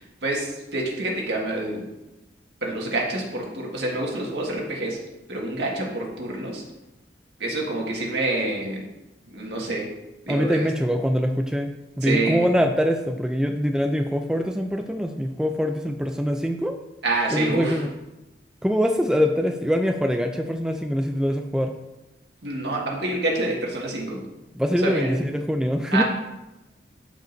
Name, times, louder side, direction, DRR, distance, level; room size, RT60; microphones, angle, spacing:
voice 1, 0.0-1.9 2.6-5.0 5.3-6.6 7.4-8.9 9.3-9.9 10.3-10.7 12.0-12.5 17.0-17.8 22.4-24.2 24.8-25.2 25.9-26.0, right 2 dB, 70° right, -2 dB, 1.8 m, -27 dB
voice 2, 10.3-11.7 12.0-16.8 17.3-17.9 18.6-21.7 24.6-26.0, equal, 5° right, 4 dB, 0.3 m, -23 dB
12.5 x 5.2 x 2.6 m, 0.97 s
head